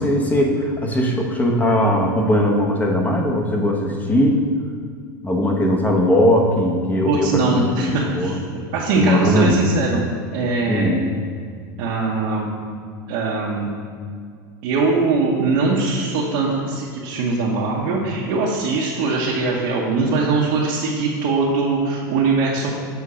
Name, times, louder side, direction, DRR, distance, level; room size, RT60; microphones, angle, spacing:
voice 1, 0.0-4.4 5.2-8.4 8.9-9.7 10.7-11.0, equal, 15° left, 0 dB, 0.9 m, -19 dB
voice 2, 7.1-8.4 8.7-11.1 11.8-12.5 13.1-13.7 14.6-22.7, right 3 dB, 65° right, -5 dB, 1.0 m, -21 dB
7.1 x 3.7 x 4.9 m, 2.1 s
supercardioid pair, 125°, 10 cm